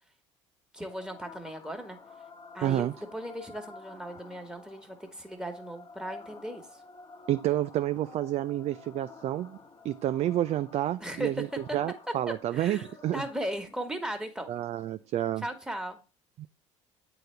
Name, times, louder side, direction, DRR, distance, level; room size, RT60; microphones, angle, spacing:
voice 1, 0.7-2.0 2.5-6.6 11.0-11.3 12.5-14.5 15.4-16.0, right 1 dB, 5° right, 1.6 m, -37 dB
sound 1, 0.8-15.8, left 4 dB, 25° left, 1.0 m, -51 dB
voice 2, 2.6-2.9 7.3-9.6 9.8-11.5 11.7-13.2 14.5-15.4 16.4-16.5, right 13 dB, 45° right, 0.4 m, -29 dB
9.0 x 4.1 x 3.4 m
hypercardioid pair, 65°, 16 cm